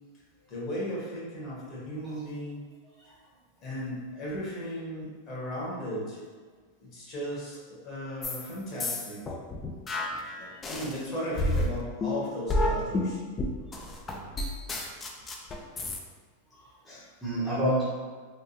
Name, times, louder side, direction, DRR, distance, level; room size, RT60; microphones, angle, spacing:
voice 1, 0.5-2.6 3.6-6.2 6.8-9.3 10.3-13.2, equal, 35° left, -7 dB, 1.3 m, -36 dB
sound 1, 8.2-8.5 8.8-11.0 11.4-16.0, left 1 dB, 20° left, 0.3 m, -30 dB
voice 2, 16.5-17.8, equal, ahead, -11 dB, 0.7 m, -30 dB
3.5 x 2.2 x 2.7 m, 1.5 s
supercardioid pair, 135°, 0 cm